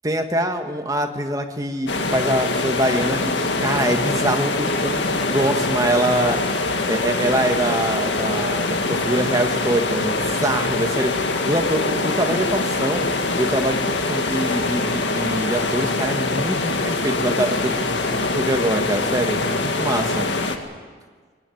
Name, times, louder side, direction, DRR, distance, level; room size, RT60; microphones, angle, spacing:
voice 1, 0.0-6.4 6.9-13.1 13.4-17.9 18.2-20.3, right 1 dB, 20° right, 5 dB, 1.7 m, -24 dB
sound 1, 1.9-20.6, left 3 dB, 85° left, 1.9 m, -23 dB
21.5 x 18.0 x 9.4 m, 1.5 s
head